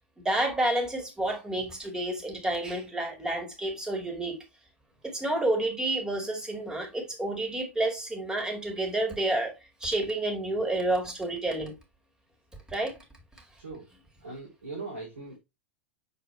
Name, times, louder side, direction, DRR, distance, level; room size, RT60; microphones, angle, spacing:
voice 1, 0.2-4.4 5.0-11.7 12.7-13.0, right 1 dB, 10° right, 2.4 m, -30 dB
voice 2, 14.2-15.4, right 3 dB, 85° right, 3.1 m, -40 dB
6.6 x 4.4 x 3.3 m
figure-of-eight pair, 90°, 7 cm